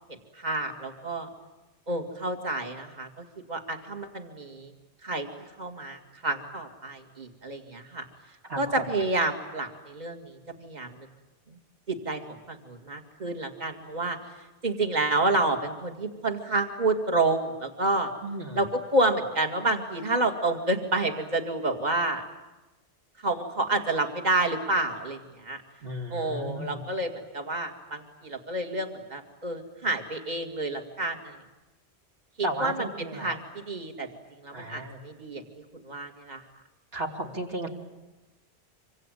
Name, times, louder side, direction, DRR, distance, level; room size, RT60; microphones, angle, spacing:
voice 1, 0.3-1.3 1.9-4.7 5.0-5.3 5.6-8.1 8.5-11.1 11.5-11.6 11.9-14.2 14.6-18.1 18.5-22.2 23.2-25.6 26.1-31.4 32.4-34.1 34.4-35.4 35.8-36.4, right 2 dB, 40° right, 4 dB, 2.3 m, -29 dB
voice 2, 18.2-18.6 25.8-26.8 32.4-32.9 33.2-33.4 34.5-35.0 36.9-37.7, right 1 dB, 65° right, 1 dB, 3.3 m, -34 dB
26.5 x 24.5 x 9.2 m, 1.1 s
omnidirectional pair, 1.1 m